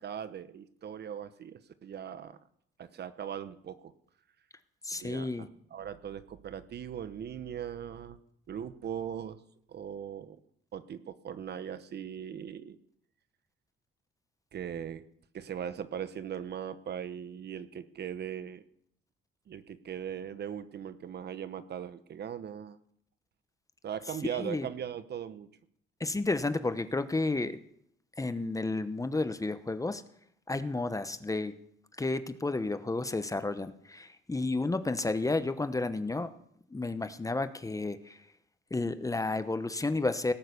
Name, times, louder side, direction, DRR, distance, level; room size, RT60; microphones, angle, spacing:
voice 1, 0.0-2.4 2.8-3.9 4.9-8.2 8.5-9.4 9.7-10.4 10.7-12.8 14.5-15.0 15.3-18.6 19.5-22.8 23.8-25.5, right 9 dB, 55° right, 13 dB, 1.0 m, -39 dB
voice 2, 4.8-5.5 24.4-24.7 26.0-27.6 28.2-30.0 30.5-31.5 32.0-36.3 36.7-38.2 38.7-40.3, left 2 dB, 15° left, 11 dB, 0.9 m, -31 dB
17.5 x 6.6 x 8.2 m, 0.67 s
cardioid pair, 90°, 20 cm